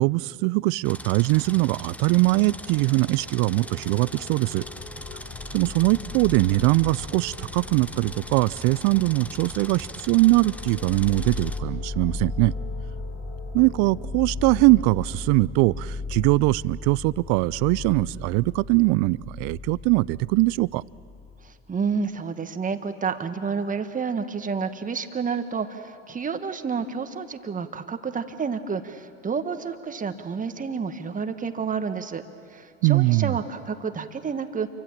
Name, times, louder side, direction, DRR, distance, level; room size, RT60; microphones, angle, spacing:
voice 1, 0.0-4.6 5.5-12.5 13.5-20.8 32.8-33.3, right 23 dB, 50° right, 21 dB, 0.6 m, -21 dB
sound 1, 0.8-16.4, left 5 dB, 65° left, 4.9 m, -47 dB
sound 2, 0.8-11.6, left 1 dB, 5° left, 0.7 m, -41 dB
sound 3, 4.6-21.7, left 3 dB, 20° left, 3.3 m, -37 dB
voice 2, 21.4-32.2 32.5-34.7, right 5 dB, 20° right, 9 dB, 1.5 m, -30 dB
28.5 x 24.5 x 7.5 m, 2.4 s
hypercardioid pair, 95°, 40 cm